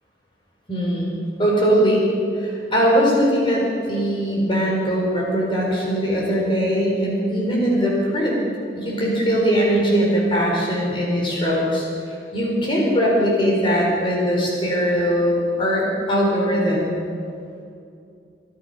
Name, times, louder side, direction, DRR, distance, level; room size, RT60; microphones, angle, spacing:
voice 1, 0.7-1.1 1.4-2.0 2.4-8.4 8.8-11.9 12.3-16.9, equal, 30° left, -3 dB, 4.3 m, -20 dB
23.5 x 11.0 x 5.5 m, 2.5 s
head